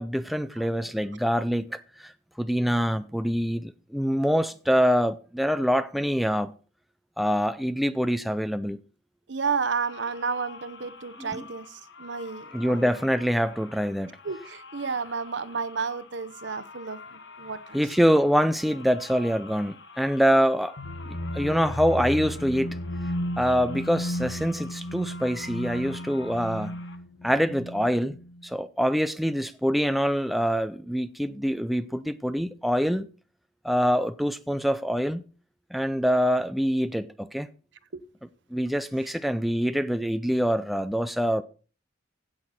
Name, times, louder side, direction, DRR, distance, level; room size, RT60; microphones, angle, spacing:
voice 1, 0.0-2.1 2.4-6.5 7.2-8.8 11.2-11.4 12.5-14.1 17.7-20.8 21.1-22.8 23.4-26.8 27.2-28.2 28.4-33.1 33.6-35.2 35.7-37.5 38.5-41.4, equal, ahead, 0.5 m, -25 dB
voice 2, 9.3-12.9 14.2-17.8 37.9-38.0, right 5 dB, 65° right, 0.9 m, -32 dB
sound 1, 9.6-27.0, left 4 dB, 65° left, 1.3 m, -47 dB
sound 2, 20.8-28.4, equal, 90° left, 1.4 m, -34 dB
16.5 x 6.5 x 4.2 m
head